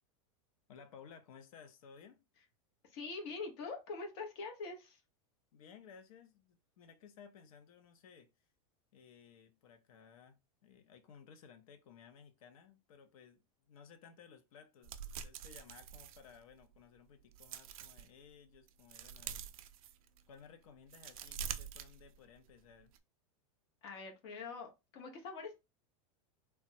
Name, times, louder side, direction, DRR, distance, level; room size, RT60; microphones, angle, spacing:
voice 1, 0.7-2.2 5.5-8.3 8.9-19.5 20.3-22.9, left 7 dB, 85° left, 0.6 m, -58 dB
voice 2, 2.8-5.0 23.8-25.6, left 4 dB, 45° left, 0.9 m, -44 dB
sound 1, 14.8-16.8 17.2-18.1 18.5-20.3 20.7-22.5 22.8-23.0, right 8 dB, 85° right, 0.4 m, -46 dB
3.3 x 2.0 x 2.7 m
supercardioid pair, 170°, 17 cm